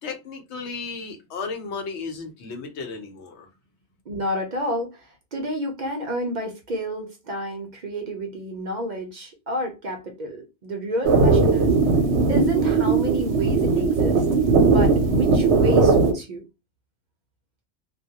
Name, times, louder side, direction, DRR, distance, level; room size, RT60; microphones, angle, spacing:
voice 1, 0.0-3.5, left 4 dB, 85° left, 1.0 m, -34 dB
voice 2, 4.1-11.7 12.3-14.3 14.6-16.4, equal, 55° right, 0.6 m, -30 dB
sound 1, 11.0-16.1, right 4 dB, 90° right, 0.9 m, -18 dB
2.2 x 2.1 x 2.7 m
omnidirectional pair, 1.1 m